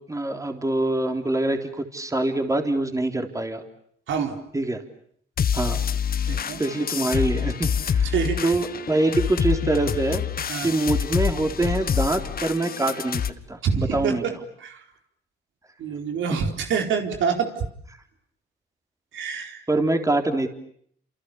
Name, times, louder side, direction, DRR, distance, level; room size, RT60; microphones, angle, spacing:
voice 1, 0.1-3.6 4.5-4.8 5.5-5.8 6.6-8.1 8.4-10.2 10.6-14.2 19.7-20.5, right 2 dB, 15° right, 5 dB, 3.8 m, -24 dB
voice 2, 4.1-4.4 6.2-6.6 8.0-8.4 10.5-10.7 13.6-14.3 14.6-14.8 15.8-17.6 19.1-19.6, right 6 dB, 75° right, 4 dB, 4.4 m, -26 dB
sound 1, 5.4-13.3, left 8 dB, 50° left, 1.6 m, -26 dB
29.5 x 28.0 x 7.1 m, 0.65 s
cardioid pair, 90°, 20 cm